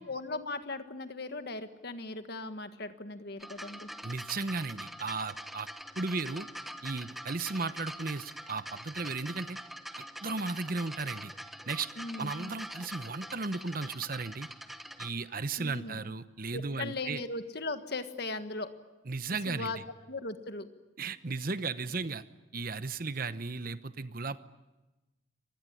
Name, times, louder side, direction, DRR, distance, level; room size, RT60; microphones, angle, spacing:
voice 1, 0.0-3.9 12.0-12.6 15.6-16.0 16.5-18.7 19.5-19.8 20.1-20.7, left 2 dB, 55° left, 9 dB, 1.6 m, -38 dB
sound 1, 3.4-15.1 16.0-16.1, equal, ahead, 1.1 m, -44 dB
voice 2, 4.0-5.7 6.0-6.5 6.8-9.6 10.0-11.3 11.7-11.9 12.2-14.5 15.0-17.2 19.1-19.7 21.0-22.2 22.5-24.4, right 4 dB, 45° right, 13 dB, 0.9 m, -35 dB
25.0 x 20.0 x 10.0 m, 1.1 s
head